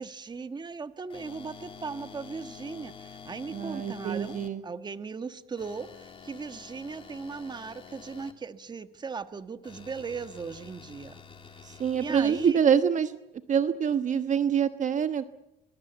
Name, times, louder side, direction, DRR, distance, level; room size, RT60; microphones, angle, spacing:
voice 1, 0.0-11.2 11.7-12.6, right 5 dB, 25° right, 10 dB, 1.4 m, -38 dB
sound 1, 1.1-4.5 5.6-8.3 9.6-12.5, left 6 dB, 30° left, 3.1 m, -48 dB
voice 2, 3.5-4.6 11.6-13.1 13.5-15.2, right 7 dB, 45° right, 10 dB, 1.2 m, -25 dB
24.5 x 22.5 x 8.2 m, 0.89 s
cardioid pair, 110°, 17 cm